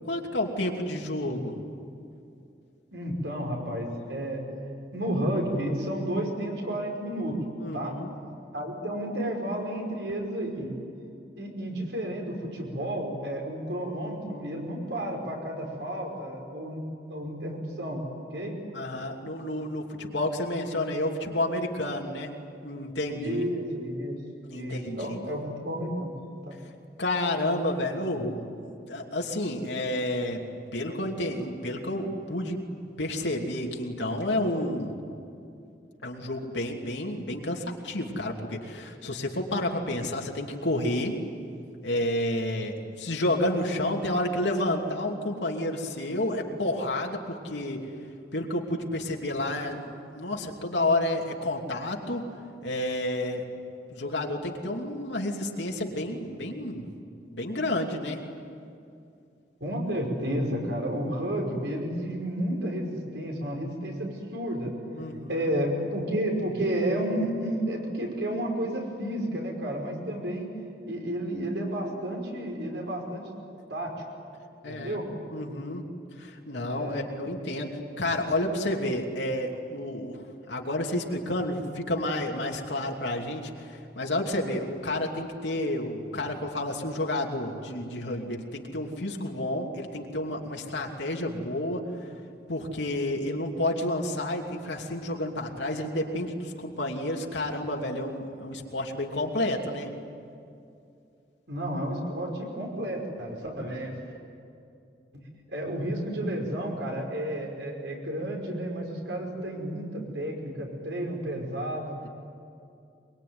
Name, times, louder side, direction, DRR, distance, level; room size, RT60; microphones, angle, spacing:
voice 1, 0.0-1.5 7.6-8.1 18.7-22.3 22.6-23.4 24.5-25.2 27.0-28.4 28.9-30.4 30.7-32.6 33.0-35.0 36.0-41.1 41.8-47.8 48.3-52.2 52.6-53.4 53.9-56.8 57.3-58.2 65.0-65.5 74.6-75.0 75.3-75.8 76.2-91.8 92.5-99.9 112.0-112.1, left 1 dB, 85° left, 0 dB, 3.0 m, -30 dB
voice 2, 2.9-4.4 4.9-7.4 7.7-7.9 8.5-10.7 11.4-16.8 17.1-18.0 18.3-18.5 23.2-24.2 24.5-26.1 26.5-26.6 28.2-28.3 59.6-64.7 65.3-70.6 70.9-73.2 73.7-73.9 74.7-75.1 76.5-77.0 101.5-104.0 105.1-105.2 105.5-112.0, right 1 dB, 85° right, 1 dB, 5.5 m, -31 dB
23.5 x 23.0 x 9.6 m, 2.5 s
head